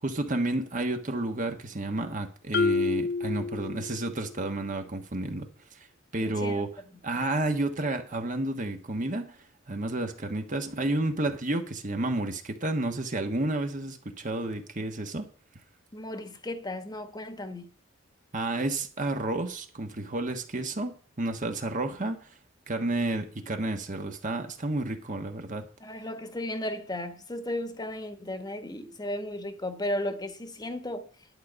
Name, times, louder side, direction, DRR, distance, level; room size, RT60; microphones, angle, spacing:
voice 1, 0.0-5.5 6.1-9.4 9.7-15.2 18.3-22.3 22.7-25.7, right 2 dB, 40° right, 1.3 m, -31 dB
Marimba xylophone, 2.5-4.3, left 4 dB, 55° left, 0.6 m, -28 dB
voice 2, 6.2-6.6 7.1-7.2 15.9-17.7 25.8-31.1, left 1 dB, 20° left, 1.3 m, -35 dB
11.5 x 5.0 x 8.0 m
head